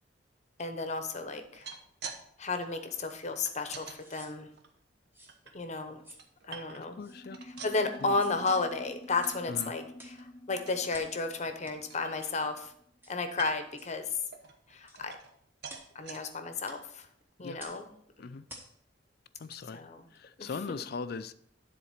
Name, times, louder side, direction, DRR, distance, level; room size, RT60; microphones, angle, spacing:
voice 1, 0.6-1.7 2.4-4.5 5.5-6.0 6.5-7.0 7.6-12.7 13.1-14.2 14.7-15.2 15.9-17.1 17.4-17.9 19.7-20.0 20.4-20.5, left 3 dB, 40° left, 7 dB, 0.9 m, -33 dB
sound 1, 1.4-2.2 2.5-4.0 4.5-5.5 6.0-7.0 7.3-8.7 9.0-9.3 9.6-9.7 10.1-10.3 10.7-11.1 11.5-11.6 11.9-12.7 13.3-13.8 14.3-15.4 15.6-16.2 16.8-16.9 17.2-17.3, right 6 dB, 60° right, 1.0 m, -47 dB
sound 2, 3.1-3.2 3.9-4.4 5.1-5.4 6.0-6.3 7.0-7.2 8.1-8.4 9.2-9.4 10.0-10.2 10.9-11.2 11.6-11.8 12.2-12.4 13.0-13.2 13.8-14.0 14.9-15.0 15.7-15.9 16.6-16.8 17.6-17.8 18.5-18.7 19.5-19.6 20.1-20.2, right 1 dB, 10° right, 1.2 m, -51 dB
voice 2, 6.8-7.4 8.0-8.2 9.5-9.7 17.4-17.6 18.2-18.5 19.4-19.8 20.1-21.3, left 4 dB, 55° left, 14 dB, 0.4 m, -40 dB
sound 3, 7.0-12.9, left 1 dB, 15° left, 0.6 m, -49 dB
10.0 x 4.1 x 5.8 m, 0.68 s
head